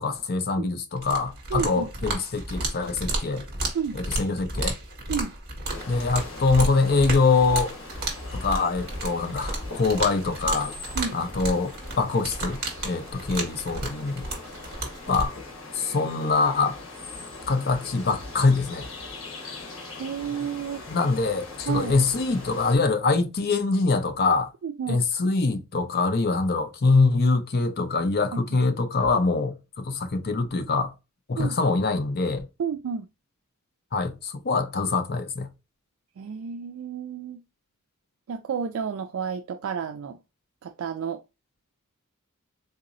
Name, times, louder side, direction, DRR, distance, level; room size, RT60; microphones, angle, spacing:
voice 1, 0.0-3.4 3.9-4.7 5.9-7.7 8.3-10.7 11.1-12.6 12.8-14.3 15.1-15.3 15.7-16.8 17.5-18.9 20.9-24.5 24.9-30.9 31.3-32.5 33.9-35.5, left 3 dB, 45° left, 0.6 m, -24 dB
sound 1, 1.0-15.3, right 2 dB, 50° right, 1.5 m, -33 dB
voice 2, 1.5-1.9 3.7-4.0 5.1-5.3 11.0-11.2 19.4-19.6 20.0-20.8 21.7-21.9 24.6-25.0 28.3-28.4 31.4-31.6 32.6-33.1 36.2-37.4 38.3-40.2 40.6-41.2, right 6 dB, 70° right, 0.3 m, -31 dB
sound 2, 5.6-22.8, left 2 dB, 65° left, 1.2 m, -41 dB
3.9 x 2.8 x 2.6 m
head